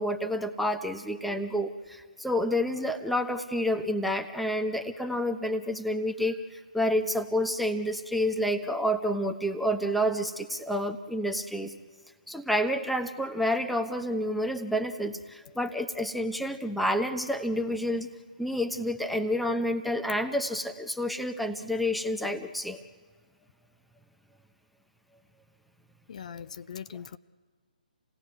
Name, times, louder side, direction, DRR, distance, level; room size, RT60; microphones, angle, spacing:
voice 1, 0.0-11.7 12.3-18.1 18.4-22.8, equal, ahead, 7 dB, 0.8 m, -29 dB
voice 2, 26.1-27.2, left 8 dB, 50° left, 14 dB, 0.6 m, -41 dB
28.0 x 17.5 x 9.6 m, 1.5 s
figure-of-eight pair, 145°, 5 cm